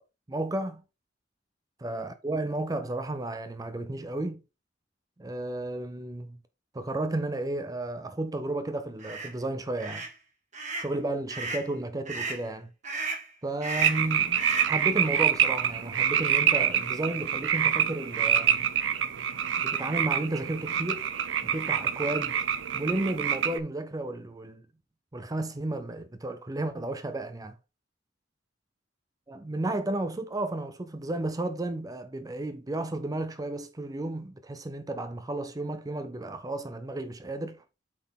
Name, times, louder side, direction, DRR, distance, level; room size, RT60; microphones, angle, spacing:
voice 1, 0.3-0.8 1.8-4.4 5.2-6.4 6.7-10.1 10.8-12.7 13.4-18.7 19.6-21.1 21.4-22.4 22.7-24.6 25.1-27.6 29.3-37.6, right 2 dB, 20° right, 0.5 m, -33 dB
sound 1, 9.0-9.3 9.8-10.1 10.5-10.9 11.3-11.7 12.1-12.4 12.8-13.3 13.6-14.1 14.4-14.8, right 3 dB, 40° right, 2.1 m, -33 dB
sound 2, 13.8-23.6, right 9 dB, 85° right, 0.6 m, -26 dB
8.5 x 4.0 x 4.0 m
head